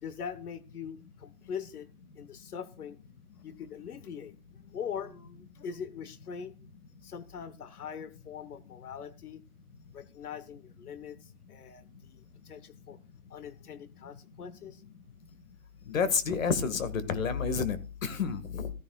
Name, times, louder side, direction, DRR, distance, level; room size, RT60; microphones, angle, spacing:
voice 1, 0.0-1.9 2.1-3.0 3.4-4.3 4.7-6.5 7.0-9.4 9.9-13.0 13.3-14.8, left 7 dB, 85° left, 15 dB, 1.2 m, -42 dB
voice 2, 15.9-18.7, left 6 dB, 65° left, 12 dB, 1.9 m, -29 dB
14.5 x 14.0 x 2.4 m, 0.33 s
hypercardioid pair, 170°, 44 cm